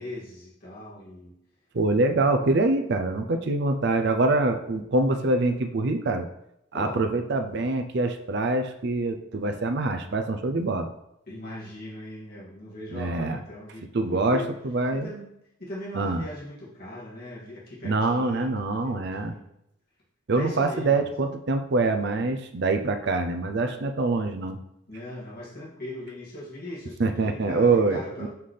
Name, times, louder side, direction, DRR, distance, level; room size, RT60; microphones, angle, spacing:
voice 1, 0.0-1.3 6.7-7.0 11.3-14.5 14.9-15.3 15.6-19.4 20.3-21.1 24.9-28.3, left 1 dB, 50° left, -8 dB, 2.4 m, -39 dB
voice 2, 1.7-6.3 6.7-10.9 12.9-13.4 13.9-15.1 15.9-16.2 17.8-19.3 20.3-24.6 27.0-28.3, right 2 dB, 60° right, 7 dB, 0.5 m, -25 dB
5.7 x 5.7 x 3.3 m, 0.80 s
head